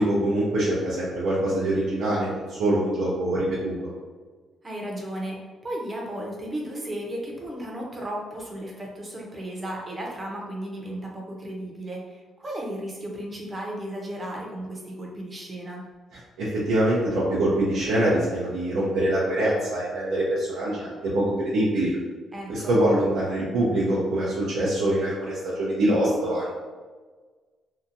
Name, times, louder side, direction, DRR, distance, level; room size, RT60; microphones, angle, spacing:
voice 1, 0.0-3.8 16.4-22.0 22.5-26.5, right 1 dB, 90° right, -8 dB, 0.5 m, -24 dB
voice 2, 4.6-5.4 5.6-15.8 22.3-22.8, right 1 dB, 25° right, -2 dB, 0.7 m, -34 dB
2.7 x 2.3 x 2.6 m, 1.4 s
cardioid pair, 90°, 0 cm